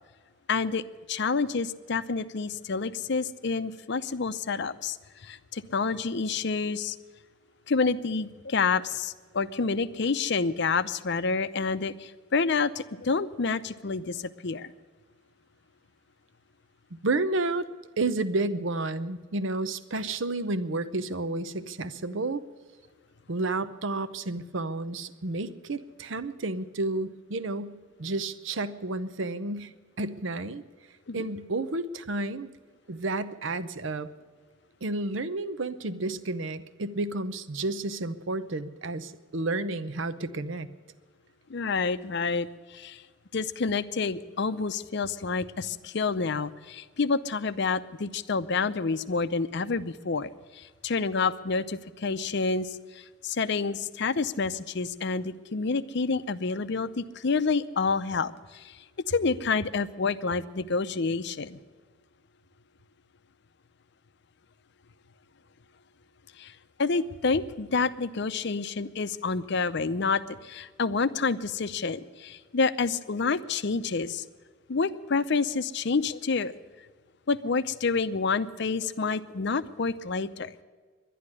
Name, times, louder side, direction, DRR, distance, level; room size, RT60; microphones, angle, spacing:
voice 1, 0.5-5.0 5.2-7.0 7.7-14.7 31.1-31.2 41.5-43.0 43.3-58.8 59.1-61.6 66.4-66.5 66.8-74.2 74.7-76.5 77.3-80.5, left 4 dB, 55° left, 13 dB, 0.6 m, -28 dB
voice 2, 17.0-17.7 18.0-22.4 23.3-30.6 31.1-32.5 32.9-34.1 34.8-40.7, right 2 dB, 65° right, 14 dB, 0.8 m, -31 dB
11.5 x 11.0 x 9.7 m, 1.5 s
head